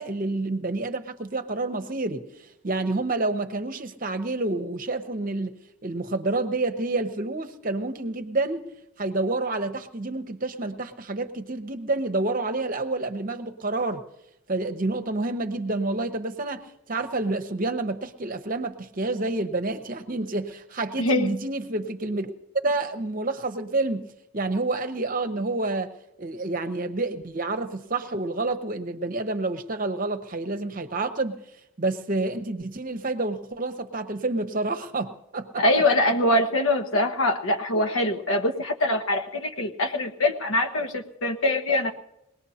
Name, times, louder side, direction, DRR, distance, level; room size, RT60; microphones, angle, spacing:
voice 1, 0.0-2.3 2.6-5.5 5.8-8.7 9.0-14.0 14.5-16.6 16.9-22.3 22.6-24.1 24.3-25.9 26.2-31.4 31.8-35.6, right 2 dB, 40° right, 8 dB, 0.8 m, -28 dB
voice 2, 21.0-21.3 35.6-41.9, left 1 dB, 80° left, 6 dB, 1.1 m, -23 dB
22.0 x 18.5 x 2.8 m, 0.85 s
head